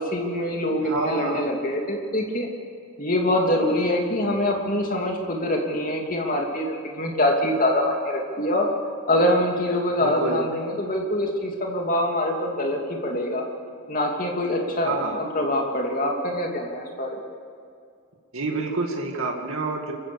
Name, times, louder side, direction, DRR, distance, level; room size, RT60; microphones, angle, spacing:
voice 1, 0.0-2.5 3.0-8.7 9.1-13.4 13.9-17.2, left 1 dB, 40° left, 1 dB, 2.8 m, -24 dB
voice 2, 0.8-1.5 10.0-10.4 14.8-15.2 18.3-19.9, right 3 dB, 70° right, 1 dB, 2.2 m, -28 dB
26.0 x 15.5 x 7.2 m, 2.3 s
head